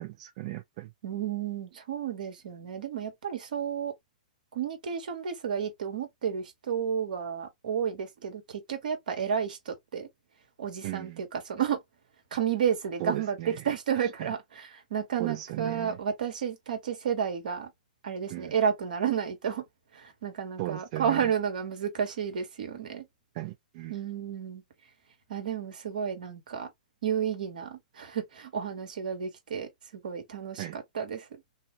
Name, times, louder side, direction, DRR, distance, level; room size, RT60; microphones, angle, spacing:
voice 1, 0.0-0.9 10.8-11.2 13.0-14.3 15.2-16.0 18.3-18.5 20.6-21.3 23.3-24.0 30.6-30.8, right 16 dB, 45° right, 0.4 m, -37 dB
voice 2, 1.0-3.9 4.5-10.1 10.6-11.8 12.3-17.7 18.0-19.6 19.9-23.0 23.9-24.6 25.3-26.7 27.0-29.7 30.0-30.6 30.9-31.3, right 8 dB, 70° right, 1.3 m, -31 dB
2.7 x 2.0 x 2.9 m
hypercardioid pair, 130°, 5 cm